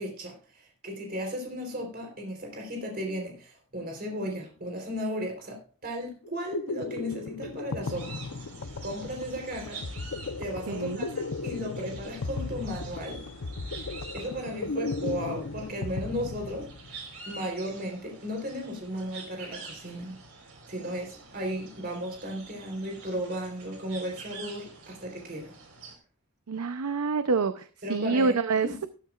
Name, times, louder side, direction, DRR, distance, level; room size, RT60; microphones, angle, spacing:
voice 1, 0.0-8.1 8.8-9.8 10.4-13.2 14.1-16.7 17.3-20.2 20.7-25.6 27.8-28.3 28.6-28.7, equal, 45° right, 3.7 m, -35 dB
sound 1, 6.2-17.0, left 3 dB, 80° left, 0.8 m, -36 dB
sound 2, 7.8-26.0, right 4 dB, 65° right, 4.2 m, -47 dB
voice 2, 10.7-11.1 26.5-28.9, right 4 dB, 90° right, 0.7 m, -27 dB
14.0 x 13.5 x 2.4 m
head